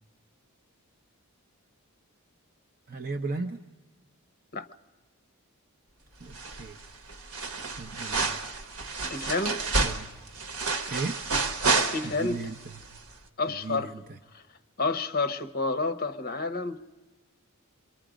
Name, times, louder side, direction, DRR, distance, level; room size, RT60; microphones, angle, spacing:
voice 1, 2.9-3.6 6.2-6.8 7.8-8.4 9.8-10.1 10.9-11.2 12.0-12.8 13.5-14.2, right 3 dB, 45° right, 0.7 m, -36 dB
sound 1, 6.3-6.8 7.1-12.4 12.7-12.8, right 3 dB, 80° right, 1.3 m, -29 dB
voice 2, 9.0-9.6 11.7-12.4 13.4-13.9 14.3-14.4 14.8-16.8, left 3 dB, 45° left, 0.9 m, -29 dB
27.5 x 24.0 x 5.1 m
head